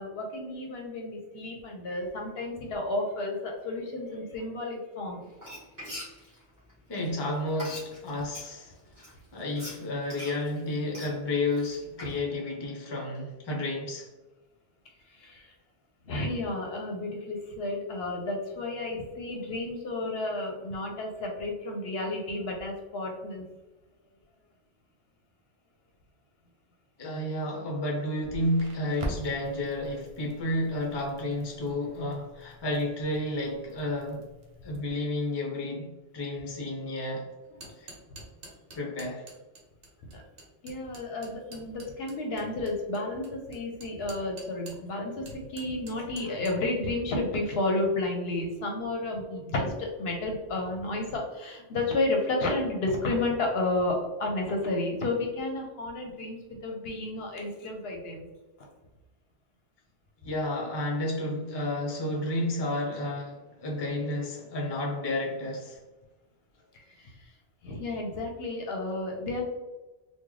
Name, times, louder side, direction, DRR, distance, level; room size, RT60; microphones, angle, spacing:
voice 1, 0.0-5.3 15.1-15.5 16.1-23.4 40.1-40.2 40.6-58.3 66.9-67.3 67.6-69.4, left 2 dB, 65° left, 1 dB, 0.8 m, -32 dB
Frying (food), 5.3-8.5 8.9-12.2, equal, 15° right, 1.5 m, -43 dB
voice 2, 6.9-9.1 9.3-14.1 27.0-34.3 34.6-37.2 37.8-37.9 38.7-39.3 60.2-65.8, left 1 dB, 25° left, -1 dB, 0.6 m, -31 dB
Crackle, 28.2-34.8, right 1 dB, 35° right, 0.6 m, -43 dB
sound 1, 37.4-44.9 45.3-46.6, right 2 dB, 60° right, 1.0 m, -48 dB
3.7 x 2.3 x 3.1 m, 1.1 s
omnidirectional pair, 1.2 m